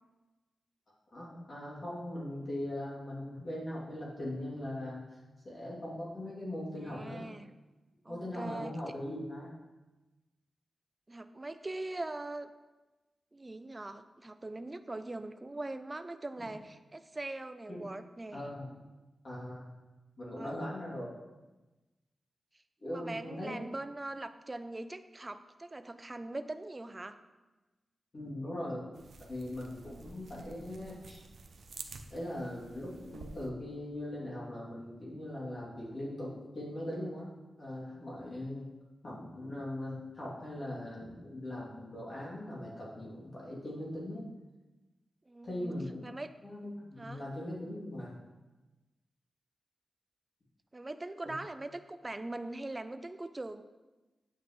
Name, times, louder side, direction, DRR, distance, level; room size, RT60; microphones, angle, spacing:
voice 1, 1.1-5.0 5.4-7.3 8.1-9.5 16.4-16.5 17.7-17.8 18.3-18.7 19.2-19.7 20.2-21.1 22.8-23.6 28.1-28.8 29.3-31.2 32.1-38.7 39.0-44.3 45.4-46.0 46.4-48.2 51.2-51.3, left 1 dB, 40° left, -5 dB, 2.6 m, -40 dB
voice 2, 6.8-7.5 8.0-8.8 11.1-12.5 13.3-18.5 20.4-20.7 22.9-27.2 45.3-46.3 47.0-47.2 50.7-53.6, right 2 dB, 20° right, 10 dB, 0.4 m, -41 dB
sound 1, 28.9-33.5, right 4 dB, 70° right, 0.7 m, -50 dB
9.3 x 8.0 x 3.1 m, 1.1 s
wide cardioid pair, 130°, 0 cm